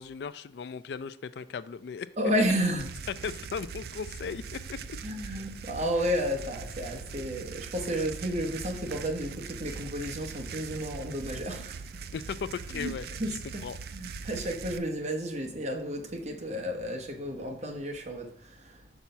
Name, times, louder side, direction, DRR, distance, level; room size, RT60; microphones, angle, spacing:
voice 1, 0.0-2.1 3.2-4.8 12.1-13.4 13.6-13.8, left 6 dB, 65° left, 0.3 m, -37 dB
voice 2, 2.2-2.9 5.0-12.0 12.7-12.9 13.2-13.7 13.9-18.8, equal, 40° right, 1.1 m, -32 dB
sound 1, 2.8-14.8, right 5 dB, 60° right, 0.4 m, -41 dB
6.0 x 4.1 x 5.6 m
head